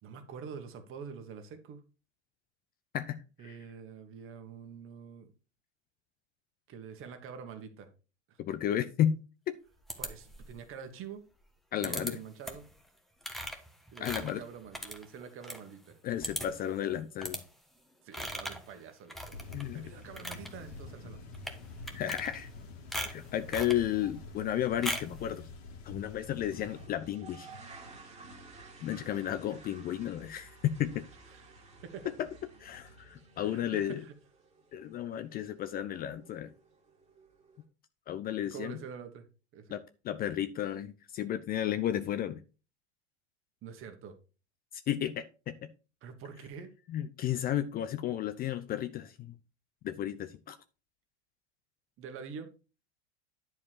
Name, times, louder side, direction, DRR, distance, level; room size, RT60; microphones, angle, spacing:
voice 1, 0.0-1.8 3.4-5.3 6.7-7.9 8.3-8.4 10.0-11.2 11.8-12.7 13.9-16.0 18.0-19.4 19.7-21.6 31.3-32.1 33.4-34.1 38.5-39.3 39.5-39.8 43.6-44.2 46.0-46.7 52.0-52.5, right 6 dB, 35° right, 7 dB, 1.8 m, -46 dB
voice 2, 2.9-3.6 8.4-9.2 9.5-9.6 11.7-12.2 14.0-14.4 16.0-17.4 19.5-19.8 21.9-22.5 23.0-25.5 25.8-27.5 28.8-31.1 32.2-32.3 32.6-34.0 34.7-36.5 38.1-38.8 39.7-42.4 44.9-45.5 46.9-49.4 49.8-50.6, left 11 dB, 25° left, 11 dB, 0.5 m, -33 dB
sound 1, 9.9-10.6 11.8-12.1 12.4-12.7 13.2-15.6 15.9-16.0 16.2-16.7 17.2-17.4 18.1-18.7 19.1-19.7 20.0-20.5 21.3-21.6 21.9-22.6 22.9-23.8 24.8-25.2, equal, ahead, 1.4 m, -38 dB
sound 2, 19.3-26.9, left 3 dB, 60° left, 2.4 m, -47 dB
sound 3, 20.1-20.2 20.5-21.0 21.3-21.4 21.9-22.0 22.3-22.4 24.0-24.2 24.8-25.0 25.4-25.5 26.4-37.6, right 3 dB, 20° right, 2.4 m, -54 dB
10.5 x 4.8 x 4.7 m, 0.33 s
figure-of-eight pair, 85°, 35 cm